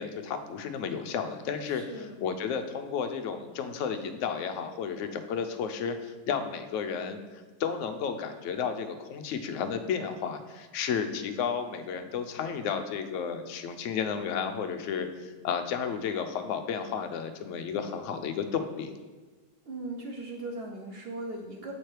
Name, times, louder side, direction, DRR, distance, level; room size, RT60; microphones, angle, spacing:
voice 1, 0.0-7.2 7.6-18.9, left 6 dB, 70° left, 7 dB, 0.7 m, -32 dB
voice 2, 1.6-2.2 19.7-21.7, right 2 dB, 70° right, 1 dB, 0.6 m, -38 dB
7.1 x 3.2 x 4.5 m, 1.4 s
omnidirectional pair, 1.7 m